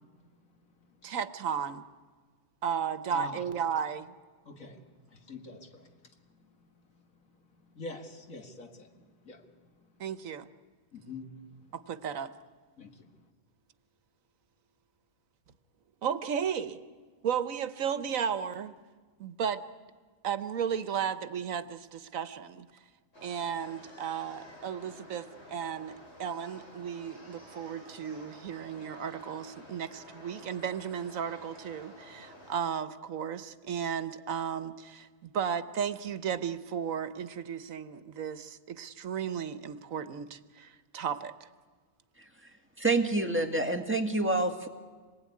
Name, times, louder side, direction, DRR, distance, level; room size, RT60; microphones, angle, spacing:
voice 1, 1.0-1.8 2.6-4.1 10.0-10.5 11.7-12.3 16.0-16.8 17.2-18.7 19.2-19.6 20.2-22.7 23.2-25.9 26.2-41.5, right 8 dB, 80° right, 13 dB, 1.4 m, -34 dB
voice 2, 3.1-3.4 4.4-4.8 5.1-5.9 7.7-9.5 10.9-11.4 12.8-13.1, left 2 dB, 85° left, 5 dB, 2.5 m, -43 dB
Shopping Mall Ambience, 23.1-32.6, left 1 dB, 50° left, 4.8 m, -51 dB
voice 3, 42.8-44.7, right 2 dB, 10° right, 4 dB, 1.8 m, -27 dB
26.5 x 20.0 x 9.6 m, 1.5 s
omnidirectional pair, 1.4 m